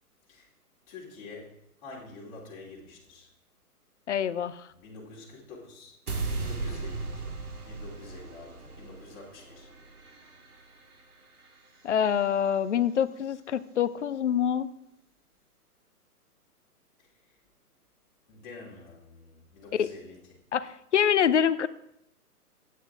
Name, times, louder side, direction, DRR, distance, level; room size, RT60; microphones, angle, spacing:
voice 1, 0.9-3.3 4.7-5.9 6.4-7.4 7.6-9.7 18.3-20.2, left 3 dB, 30° left, -5 dB, 3.1 m, -47 dB
voice 2, 4.1-4.7 11.8-14.7 19.7-19.9 20.5-21.7, left 8 dB, 50° left, 15 dB, 0.6 m, -26 dB
sound 1, 6.1-12.2, right 3 dB, 70° right, 2.0 m, -38 dB
12.0 x 9.3 x 3.7 m, 0.78 s
figure-of-eight pair, 130°, 46 cm